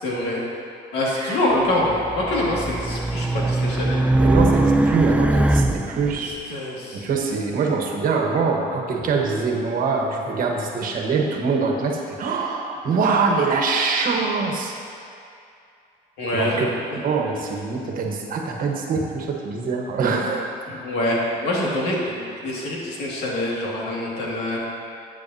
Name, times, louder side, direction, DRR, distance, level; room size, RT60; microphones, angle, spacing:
voice 1, 0.0-0.4 0.9-4.0 6.5-7.0 16.2-17.0 20.7-24.6, left 1 dB, 90° left, -4 dB, 2.2 m, -25 dB
voice 2, 1.1-1.4 4.1-6.3 6.9-14.8 16.3-16.7 17.0-20.5, right 4 dB, 55° right, 1 dB, 1.3 m, -24 dB
Race car auto racing, 1.8-6.2, right 2 dB, 5° right, 0.3 m, -21 dB
13.0 x 8.3 x 2.8 m, 2.5 s
cardioid pair, 110°, 17 cm